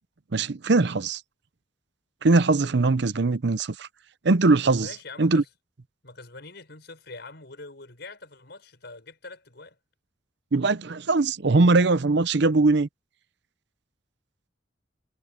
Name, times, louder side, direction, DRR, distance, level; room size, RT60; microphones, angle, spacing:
voice 1, 0.3-1.2 2.2-3.9 4.2-4.9 5.2-5.4 10.5-12.9, right 3 dB, 65° right, 0.7 m, -21 dB
voice 2, 4.7-5.5 6.0-9.8, left 3 dB, 60° left, 6.2 m, -44 dB
head